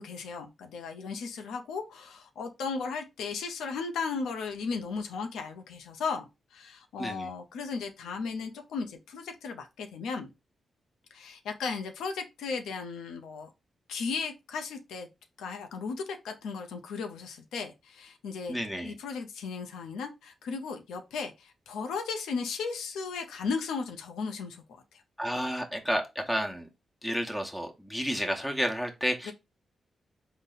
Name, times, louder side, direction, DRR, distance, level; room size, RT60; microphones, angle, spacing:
voice 1, 0.0-10.3 11.1-13.5 13.9-15.1 15.4-18.6 18.8-24.6 24.9-25.0 29.3-29.4, left 5 dB, 90° left, 0.5 m, -36 dB
voice 2, 7.0-7.3 18.5-19.0 25.2-26.7 27.0-29.3, equal, 5° left, 1.1 m, -31 dB
3.9 x 2.1 x 3.9 m
supercardioid pair, 55°, 0 cm